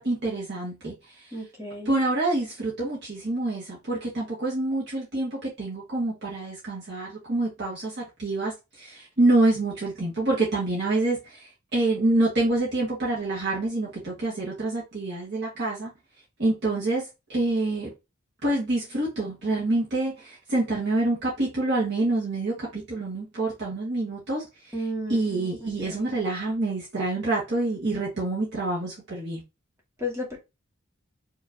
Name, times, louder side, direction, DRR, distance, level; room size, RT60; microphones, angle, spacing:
voice 1, 0.0-1.3 1.8-15.9 16.4-17.9 18.4-29.4, right 2 dB, 55° right, 1.4 m, -27 dB
voice 2, 1.3-2.0 24.7-26.2 30.0-30.4, left 1 dB, 15° right, 1.6 m, -34 dB
4.9 x 2.9 x 2.6 m
head